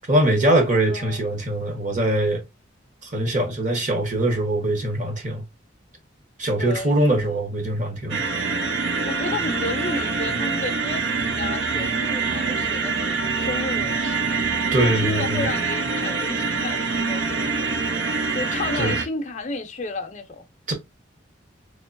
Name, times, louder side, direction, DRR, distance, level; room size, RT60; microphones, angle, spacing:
voice 1, 0.1-2.4 3.0-5.4 6.4-8.2 14.7-15.5 18.8-19.0 20.7-20.8, right 1 dB, 40° right, 1.1 m, -22 dB
voice 2, 0.9-1.3 6.6-7.4 9.1-14.5 14.8-17.8 18.3-20.4, left 3 dB, 35° left, 0.6 m, -32 dB
sound 1, 8.1-19.0, right 4 dB, 60° right, 0.6 m, -25 dB
3.7 x 2.9 x 2.6 m
head